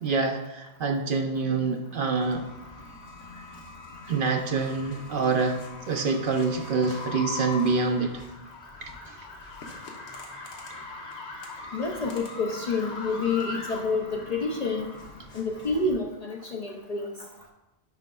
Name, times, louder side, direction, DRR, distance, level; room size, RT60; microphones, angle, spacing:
voice 1, 0.0-2.5 4.1-5.6 5.9-8.2 8.8-9.1 10.7-10.8, right 4 dB, 60° right, 4 dB, 0.7 m, -26 dB
sound 1, 2.1-15.9, left 3 dB, 90° left, 1.3 m, -41 dB
voice 2, 11.7-14.9 15.3-17.1, left 3 dB, 45° left, 1 dB, 0.5 m, -28 dB
9.2 x 5.1 x 2.3 m, 0.97 s
omnidirectional pair, 1.1 m